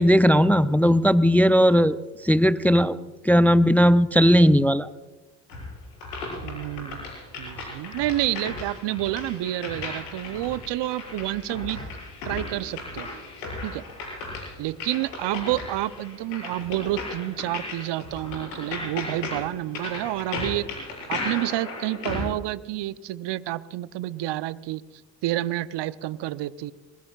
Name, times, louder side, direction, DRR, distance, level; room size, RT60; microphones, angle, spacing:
voice 1, 0.0-2.0 2.2-4.9, equal, 5° left, 15 dB, 0.5 m, -18 dB
sound 1, 5.5-22.3, left 3 dB, 80° left, 6.8 m, -36 dB
voice 2, 6.4-7.1 7.4-11.8 12.3-13.1 13.6-13.8 14.6-20.7 21.1-24.8 25.2-26.7, right 15 dB, 55° right, 16 dB, 0.9 m, -29 dB
24.5 x 22.0 x 2.4 m, 1.3 s
hypercardioid pair, 50°, 50 cm